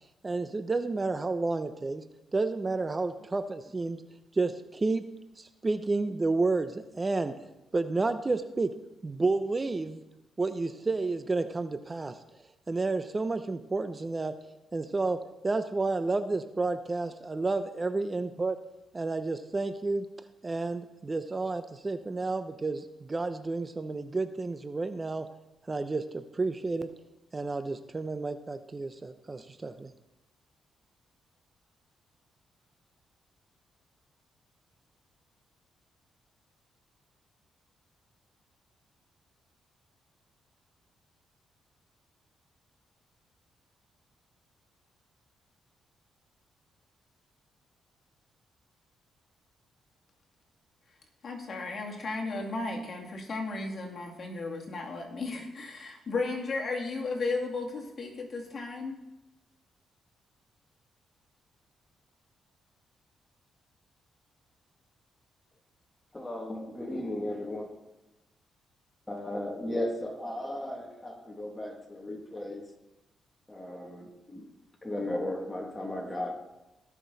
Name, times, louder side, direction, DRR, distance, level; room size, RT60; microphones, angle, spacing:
voice 1, 0.2-2.0 2.3-4.0 4.3-5.0 5.4-7.3 7.7-8.7 9.0-10.0 10.4-12.2 12.7-14.3 14.7-15.2 15.4-18.6 18.9-20.1 20.4-25.2 25.7-26.9 27.3-29.9, right 3 dB, 30° right, 0.7 m, -30 dB
voice 2, 51.2-59.0, left 3 dB, 50° left, 2.4 m, -34 dB
voice 3, 66.1-67.9 69.1-72.7 73.5-74.4 74.8-76.5, left 1 dB, 20° left, 2.4 m, -36 dB
17.5 x 6.1 x 4.1 m
supercardioid pair, 60°, 0 cm